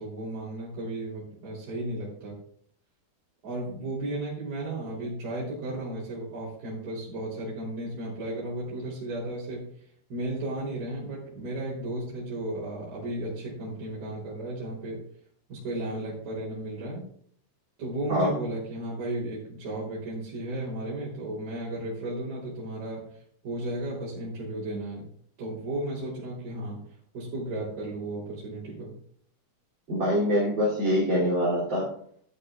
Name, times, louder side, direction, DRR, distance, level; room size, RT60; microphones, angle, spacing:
voice 1, 0.0-2.4 3.4-15.0 15.5-17.1 17.8-25.0 25.4-28.9, right 1 dB, 55° right, -9 dB, 4.9 m, -34 dB
voice 2, 29.9-31.9, equal, 30° right, -8 dB, 3.2 m, -24 dB
13.5 x 12.0 x 2.4 m, 0.62 s
omnidirectional pair, 4.6 m